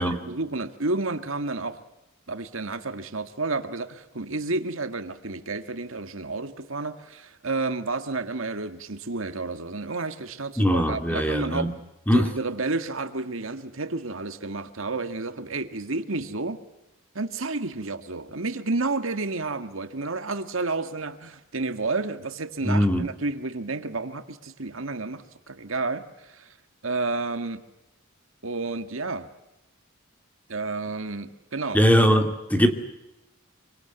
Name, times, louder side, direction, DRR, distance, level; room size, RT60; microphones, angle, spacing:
voice 1, 0.3-1.8 2.3-11.8 12.1-16.6 17.2-26.6 26.8-27.6 28.4-29.3 30.5-31.8, right 3 dB, 75° right, 1.8 m, -31 dB
voice 2, 10.6-11.7 12.1-12.3 22.6-23.1 31.7-32.7, equal, 10° left, 2.4 m, -21 dB
26.5 x 25.0 x 8.2 m
head